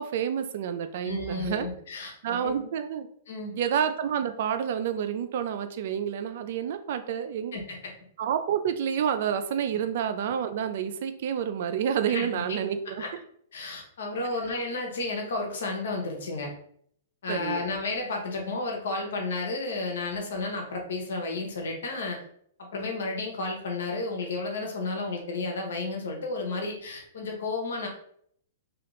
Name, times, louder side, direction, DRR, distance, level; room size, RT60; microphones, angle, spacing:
voice 1, 0.0-1.7 2.2-3.1 3.5-7.6 8.2-13.0 17.3-17.7, right 8 dB, 60° right, 9 dB, 0.4 m, -29 dB
voice 2, 1.0-2.7 3.3-3.5 7.5-7.9 12.1-12.6 13.0-13.1 13.5-16.5 17.2-22.2 22.6-27.9, left 3 dB, 75° left, 1 dB, 0.9 m, -32 dB
2.7 x 2.4 x 3.1 m, 0.65 s
hypercardioid pair, 130°, 0 cm